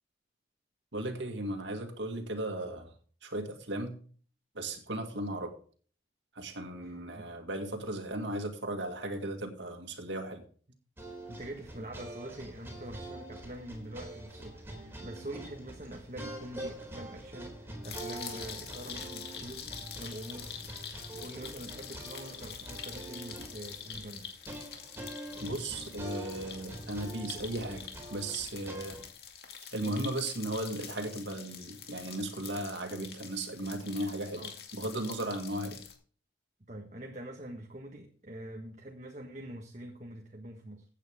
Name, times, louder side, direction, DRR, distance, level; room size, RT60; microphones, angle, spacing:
voice 1, 0.9-2.9 3.2-4.0 4.5-5.5 6.3-10.4 25.4-29.0 29.7-34.5 34.7-35.8, right 1 dB, 85° right, 2.2 m, -36 dB
voice 2, 6.8-7.3 11.3-20.5 21.2-24.3 29.8-30.1 34.4-34.5 36.7-40.8, right 1 dB, 40° right, 1.4 m, -45 dB
sound 1, 11.0-29.1, right 1 dB, 15° right, 4.0 m, -45 dB
sound 2, 17.8-35.9, left 8 dB, 55° left, 2.4 m, -46 dB
15.5 x 9.1 x 3.6 m
head